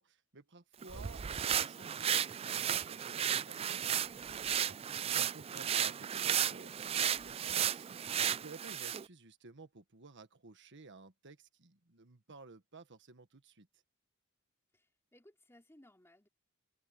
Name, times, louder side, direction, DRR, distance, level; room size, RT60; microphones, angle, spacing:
voice 1, 0.0-4.8 5.1-8.0 8.4-13.7, right 3 dB, 55° right, 1.5 m, -55 dB
sound 1, 0.8-9.0, right 9 dB, 25° right, 0.3 m, -34 dB
sound 2, 3.6-5.5 6.6-8.1, left 1 dB, 55° left, 5.5 m, -67 dB
voice 2, 14.7-16.3, left 1 dB, 10° left, 3.4 m, -62 dB
open air
head